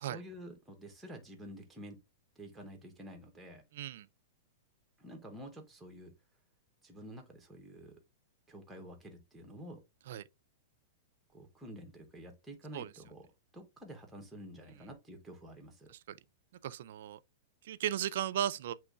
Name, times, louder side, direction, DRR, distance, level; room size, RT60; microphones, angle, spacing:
voice 1, 0.0-2.0 2.4-3.6 5.0-6.1 6.8-8.0 8.5-9.8 11.3-13.3 13.5-15.9, equal, 5° right, 0.7 m, -49 dB
voice 2, 3.7-4.1 10.1-10.2 12.7-12.9 15.9-16.2 16.6-17.2 17.6-18.7, right 11 dB, 55° right, 0.3 m, -36 dB
7.8 x 3.0 x 2.3 m
supercardioid pair, 175°, 0 cm